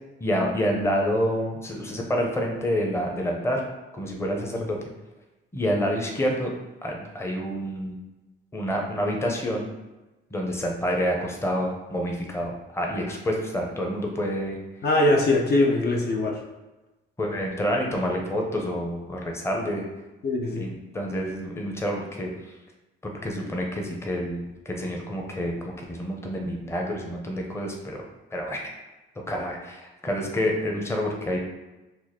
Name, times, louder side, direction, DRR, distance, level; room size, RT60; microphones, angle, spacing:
voice 1, 0.2-3.6 3.9-4.8 5.5-6.5 6.8-7.9 8.5-9.7 10.3-14.6 17.2-19.8 20.5-22.3 23.2-28.0 28.3-28.6 29.3-31.4, equal, 15° left, 0 dB, 0.7 m, -28 dB
voice 2, 14.8-16.4 20.2-20.7, left 2 dB, 55° left, 0 dB, 0.6 m, -22 dB
2.9 x 2.4 x 4.0 m, 1.1 s
cardioid pair, 90°, 20 cm